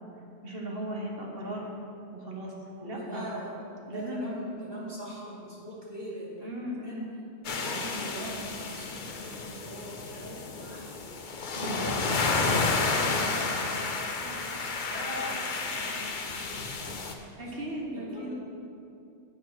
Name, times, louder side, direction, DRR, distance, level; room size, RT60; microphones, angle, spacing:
voice 1, 0.4-1.7 2.1-2.5 2.8-3.3 3.9-4.2 6.4-7.1 11.6-12.3 17.4-18.3, right 1 dB, 55° right, -1 dB, 1.6 m, -37 dB
voice 2, 2.8-3.6 3.9-6.5 6.8-7.0 7.4-10.9 11.5-11.8 12.1-12.3 12.7-14.4 14.9-17.0 17.4-17.5 17.9-18.3, equal, 20° right, -7 dB, 2.5 m, -41 dB
sound 1, 7.4-17.1, left 3 dB, 50° left, 0.8 m, -31 dB
7.7 x 7.3 x 5.9 m, 2.6 s
omnidirectional pair, 1.2 m